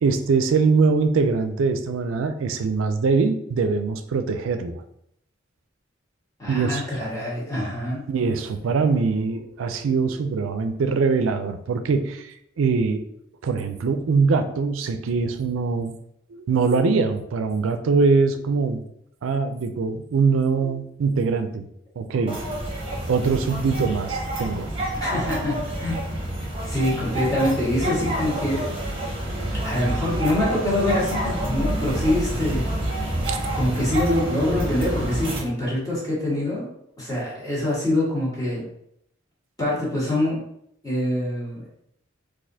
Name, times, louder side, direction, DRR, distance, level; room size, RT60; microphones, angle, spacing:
voice 1, 0.0-4.8 6.5-6.8 8.1-13.0 13.4-15.9 16.5-18.8 19.2-21.6 22.0-22.4 23.1-24.7 33.3-33.4, right 4 dB, 80° right, 8 dB, 0.4 m, -22 dB
voice 2, 6.4-8.0 25.0-25.9 26.4-28.7 29.0-29.1 29.6-32.7 33.5-36.7 37.0-38.6 39.6-40.4 40.8-41.6, left 1 dB, 20° left, -7 dB, 1.5 m, -25 dB
sound 1, 22.3-35.4, right 1 dB, 25° right, 0.9 m, -28 dB
4.0 x 2.5 x 2.7 m, 0.73 s
head